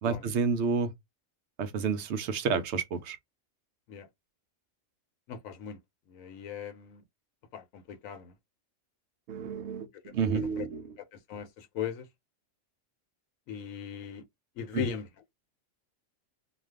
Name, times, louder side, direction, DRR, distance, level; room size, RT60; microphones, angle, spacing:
voice 1, 0.0-0.9 1.6-3.2 9.3-10.9 14.7-14.9, right 5 dB, 65° right, 0.8 m, -30 dB
voice 2, 5.3-5.8 6.1-7.0 7.5-8.3 10.0-10.1 10.4-10.7 11.3-12.1 13.5-14.2 14.6-15.1, left 8 dB, 80° left, 1.1 m, -38 dB
2.5 x 2.3 x 3.3 m
omnidirectional pair, 1.4 m